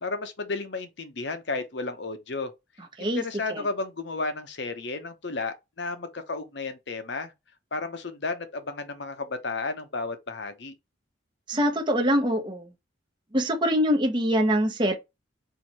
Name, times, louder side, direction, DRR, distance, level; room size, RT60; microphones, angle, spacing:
voice 1, 0.0-2.5 3.0-7.3 7.7-10.7, left 3 dB, 60° left, 0.8 m, -33 dB
voice 2, 11.5-12.7 13.3-14.9, equal, 25° right, 0.8 m, -24 dB
4.6 x 2.8 x 4.0 m
head